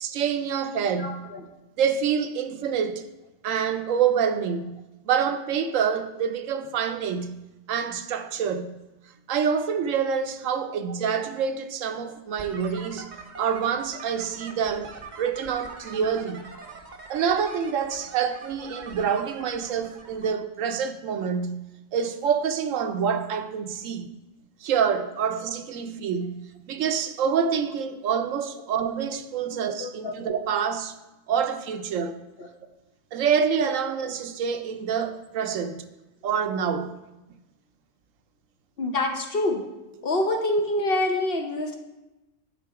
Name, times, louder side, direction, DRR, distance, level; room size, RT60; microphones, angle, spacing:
voice 1, 0.0-1.2 1.8-3.1 3.4-4.8 5.1-7.4 7.7-8.7 9.3-13.1 13.4-14.9 15.2-16.4 17.1-21.6 21.9-24.1 24.6-30.9 31.3-32.2 33.1-35.9 36.2-36.9, right 7 dB, 75° right, 1.0 m, -26 dB
voice 2, 1.0-1.4 29.5-30.1 32.4-32.5 38.8-39.6 40.0-41.8, left 1 dB, 55° left, 0.8 m, -26 dB
sound 1, 12.4-20.3, right 4 dB, 45° right, 0.7 m, -43 dB
9.7 x 4.1 x 4.7 m
omnidirectional pair, 1.4 m